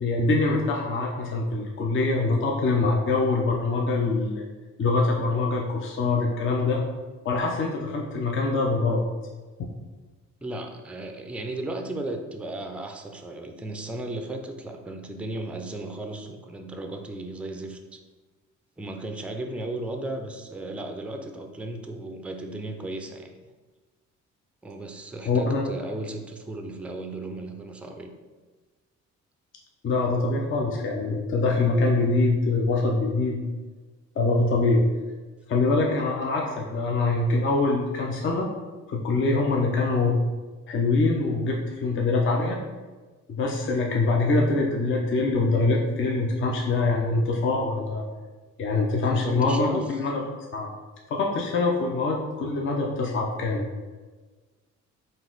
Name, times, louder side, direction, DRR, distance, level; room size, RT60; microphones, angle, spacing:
voice 1, 0.0-4.4 4.8-6.9 7.2-9.0 25.2-25.6 29.8-33.4 34.2-34.8 35.5-38.5 38.9-40.2 40.7-42.6 43.3-48.0 48.6-50.2 50.5-50.7 51.1-53.7, left 3 dB, 40° left, -1 dB, 0.5 m, -24 dB
voice 2, 10.4-18.0 18.8-23.3 24.6-28.1 48.9-49.9, right 2 dB, 5° right, 4 dB, 0.4 m, -35 dB
3.9 x 2.5 x 3.8 m, 1.3 s
cardioid pair, 90°, 30 cm